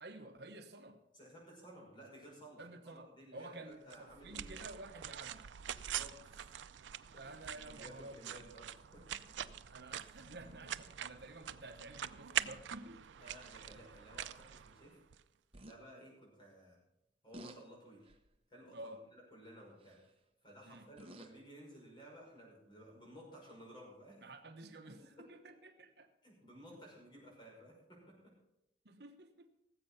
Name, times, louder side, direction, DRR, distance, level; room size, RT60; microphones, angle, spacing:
voice 1, 0.0-1.0 2.6-5.4 7.2-8.4 9.7-13.0 18.7-19.0 20.6-20.9 24.2-26.1 28.8-29.5, right 2 dB, 65° right, 6 dB, 1.1 m, -51 dB
voice 2, 1.1-4.6 5.7-6.4 7.6-9.4 13.2-15.0 15.5-16.8 17.2-18.1 18.5-20.0 20.4-24.2 24.8-25.3 26.2-28.3, right 1 dB, 25° left, -3 dB, 6.0 m, -56 dB
sound 1, 3.9-15.2, right 10 dB, 85° right, 0.5 m, -44 dB
sound 2, 15.5-15.8 17.3-17.6 18.0-18.4 19.8-20.1 20.7-21.4 22.4-22.5, right 1 dB, 30° right, 0.9 m, -53 dB
18.0 x 7.8 x 5.7 m, 0.84 s
head